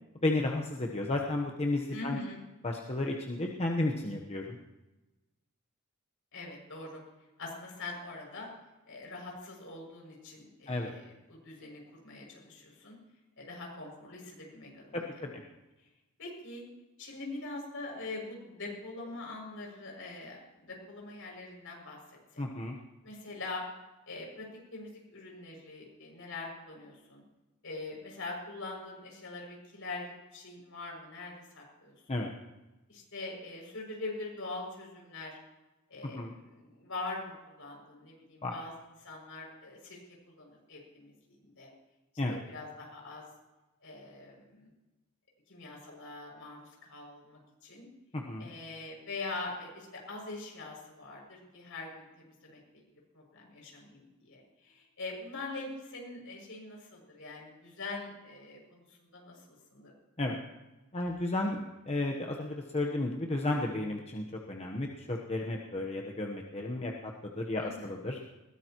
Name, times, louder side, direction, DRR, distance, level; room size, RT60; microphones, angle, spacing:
voice 1, 0.2-2.2 2.6-4.6 10.7-10.9 14.9-15.4 22.4-22.8 32.1-32.3 36.1-36.3 38.4-38.5 42.2-42.4 48.1-48.5 60.2-60.4 60.9-68.2, left 2 dB, 30° left, 0 dB, 1.1 m, -33 dB
voice 2, 1.9-2.4 6.3-7.0 7.4-8.5 8.9-12.9 13.4-15.0 16.2-16.6 17.0-22.4 23.0-23.6 24.1-27.2 27.6-31.9 32.9-35.4 35.9-38.7 39.0-40.0 40.3-41.7 42.3-43.2 43.8-44.7 45.5-47.9 48.4-52.8 53.1-59.4 59.7-59.9 67.6-67.9, left 3 dB, 65° left, -1 dB, 6.8 m, -43 dB
21.0 x 18.0 x 3.1 m, 1.1 s
head